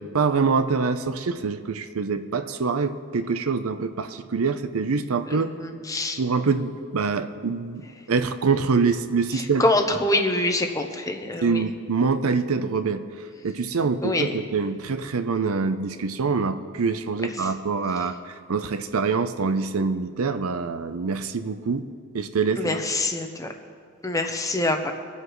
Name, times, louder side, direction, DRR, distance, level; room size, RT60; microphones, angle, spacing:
voice 1, 0.0-5.5 6.2-9.6 11.4-13.0 13.4-21.9 22.1-22.8, right 4 dB, 80° right, 11 dB, 0.6 m, -25 dB
voice 2, 5.4-6.2 9.3-11.6 14.0-14.3 17.4-17.5 22.6-23.5 24.0-24.9, left 2 dB, 15° left, 4 dB, 0.8 m, -25 dB
24.0 x 8.0 x 3.1 m, 2.2 s
head